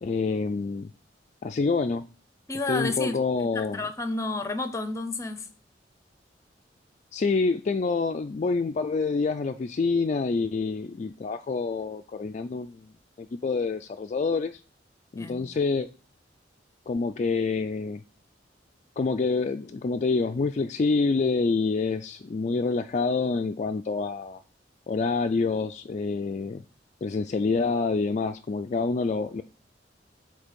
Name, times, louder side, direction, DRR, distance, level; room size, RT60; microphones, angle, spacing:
voice 1, 0.0-0.9 1.4-2.1 2.7-3.9 7.1-12.9 13.2-14.6 15.1-15.9 16.9-18.0 19.0-24.4 24.9-26.6 27.0-29.4, left 4 dB, 40° left, 0.3 m, -27 dB
voice 2, 2.5-5.5 15.2-15.4, left 3 dB, 15° left, 0.7 m, -31 dB
8.1 x 3.3 x 5.1 m
head